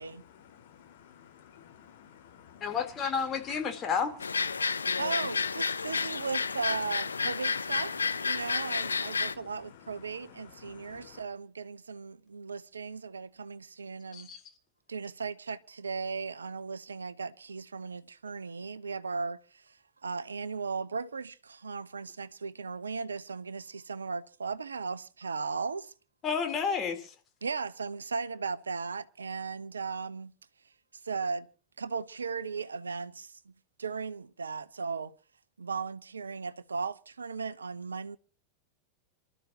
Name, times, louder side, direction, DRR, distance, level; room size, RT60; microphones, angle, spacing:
voice 1, 0.3-2.8 4.5-5.0 5.7-6.3 7.9-11.2, left 9 dB, 55° left, 4.3 m, -54 dB
voice 2, 2.6-4.2 14.1-14.4 26.2-27.1, left 6 dB, 25° left, 3.5 m, -31 dB
sound 1, 4.2-9.3, left 5 dB, 75° left, 0.7 m, -31 dB
voice 3, 5.0-7.9 8.2-14.3 14.9-19.8 20.0-25.9 27.4-30.3 31.0-31.5 31.8-33.4 33.8-35.1 35.6-38.2, right 5 dB, 75° right, 0.9 m, -37 dB
27.5 x 13.0 x 2.9 m
figure-of-eight pair, 90°, 0 cm